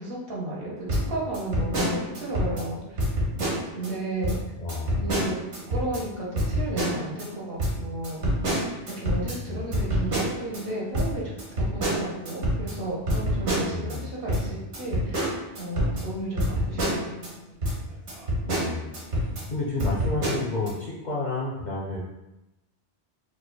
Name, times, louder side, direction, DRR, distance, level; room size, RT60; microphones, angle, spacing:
voice 1, 0.0-3.0 3.7-4.4 4.9-5.4 5.7-8.2 8.9-15.3 15.6-17.1, right 1 dB, 60° right, -5 dB, 1.1 m, -33 dB
sound 1, 0.9-2.7 3.0-3.9 4.2-4.4 4.7-6.0 6.4-7.3 7.6-10.6 10.9-14.0 14.3-17.3 17.6-17.8 18.1-19.5 19.8-20.7, equal, 85° right, 1.2 m, -27 dB
voice 2, 4.6-5.1 9.4-9.7 13.7-14.1 18.4-22.0, left 3 dB, 55° left, -5 dB, 0.5 m, -31 dB
4.5 x 2.3 x 2.2 m, 0.96 s
omnidirectional pair, 1.1 m